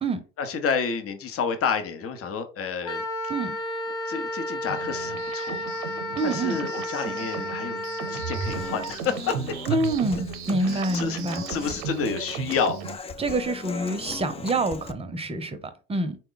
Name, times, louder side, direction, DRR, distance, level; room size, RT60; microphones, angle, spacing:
voice 1, 0.4-3.0 4.1-5.6 6.2-7.8 8.1-9.4 10.9-11.2 11.5-12.8, left 6 dB, 45° left, 0.8 m, -29 dB
Wind instrument woodwind instrument, 2.8-8.9, left 1 dB, 70° left, 1.0 m, -32 dB
sound 1, 4.7-13.0, right 7 dB, 85° right, 0.7 m, -35 dB
voice 2, 6.1-6.6 9.7-11.4 13.2-16.2, right 2 dB, 20° right, 0.7 m, -27 dB
Human voice / Acoustic guitar, 8.5-14.9, left 4 dB, 20° left, 0.3 m, -39 dB
4.0 x 2.2 x 3.8 m
supercardioid pair, 85°, 32 cm